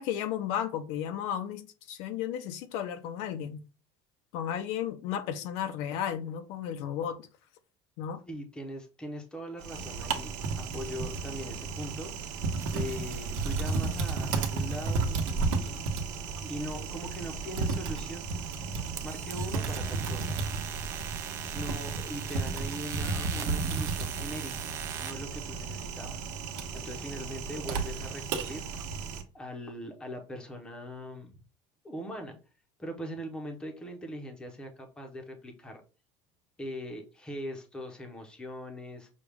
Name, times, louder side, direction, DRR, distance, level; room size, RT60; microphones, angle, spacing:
voice 1, 0.0-3.6 4.3-7.2 8.0-8.2, left 9 dB, 65° left, 0.6 m, -34 dB
voice 2, 8.3-12.1 12.7-15.9 16.4-18.3 19.0-20.4 21.5-24.5 25.0-26.3 26.7-28.7 29.3-31.4 31.8-32.4 32.8-35.8 36.6-39.1, equal, 5° left, 0.8 m, -41 dB
Typing, 9.6-29.2, right 4 dB, 70° right, 1.1 m, -33 dB
sound 1, 12.6-25.1, right 6 dB, 25° right, 0.5 m, -42 dB
6.2 x 2.3 x 3.5 m
cardioid pair, 180°, 12 cm